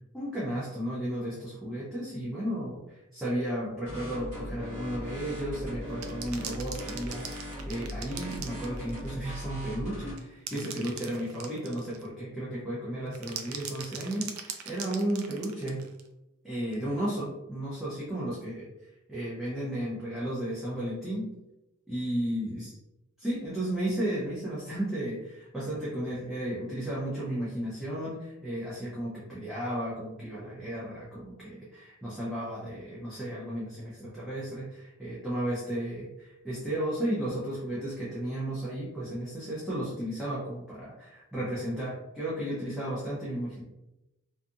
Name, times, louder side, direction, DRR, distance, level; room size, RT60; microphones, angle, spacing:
voice 1, 0.1-15.8 16.4-18.6 19.1-21.3 21.9-22.7 23.2-43.6, right 1 dB, ahead, -9 dB, 0.6 m, -34 dB
sound 1, 3.9-10.1, equal, 35° right, 1.1 m, -39 dB
sound 2, 5.9-9.1 10.2-12.1 13.1-16.1 16.7-16.8, right 7 dB, 80° right, 0.4 m, -41 dB
2.6 x 2.5 x 2.4 m, 0.94 s
head